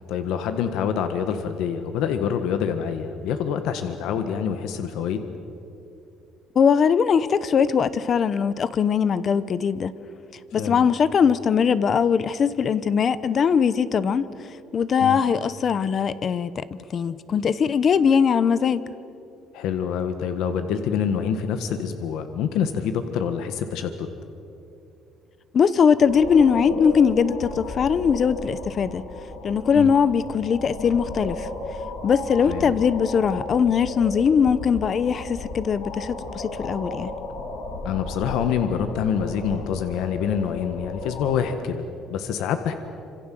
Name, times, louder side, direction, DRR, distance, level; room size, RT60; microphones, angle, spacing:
voice 1, 0.1-5.2 10.6-10.8 15.0-15.2 19.5-24.1 29.7-29.9 32.4-32.7 37.8-42.7, left 7 dB, 70° left, 8 dB, 1.6 m, -26 dB
voice 2, 6.5-9.9 10.5-14.2 14.7-16.6 16.9-18.8 25.5-29.0 29.4-31.5 32.0-37.1, left 6 dB, 35° left, 16 dB, 0.9 m, -21 dB
sound 1, 26.0-41.4, left 2 dB, 90° left, 6.8 m, -35 dB
27.5 x 26.5 x 7.8 m, 2.8 s
cardioid pair, 165°, 0 cm